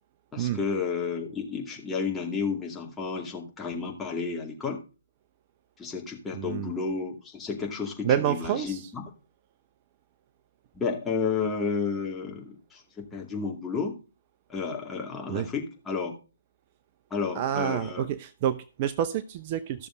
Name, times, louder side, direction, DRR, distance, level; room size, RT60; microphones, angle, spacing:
voice 1, 0.3-4.8 5.8-9.0 10.7-14.0 14.5-16.1 17.1-18.1, left 5 dB, 10° left, 0 dB, 2.4 m, -31 dB
voice 2, 6.3-6.7 8.0-8.8 15.3-15.5 17.3-19.9, right 10 dB, 35° right, 12 dB, 0.7 m, -28 dB
14.5 x 6.7 x 3.8 m, 0.34 s
figure-of-eight pair, 135°, 0 cm